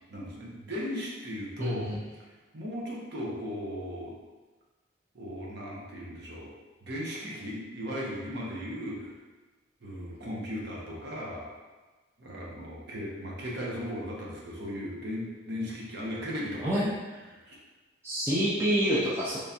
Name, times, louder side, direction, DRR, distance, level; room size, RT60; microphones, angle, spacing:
voice 1, 0.1-1.9 2.5-4.1 5.1-6.5 6.8-9.1 9.8-11.5 12.2-16.9 17.3-17.6, equal, 55° right, -4 dB, 0.7 m, -37 dB
voice 2, 1.6-2.0 16.6-16.9 18.0-19.4, equal, 10° right, -7 dB, 0.3 m, -27 dB
3.4 x 3.0 x 2.7 m, 1.3 s
head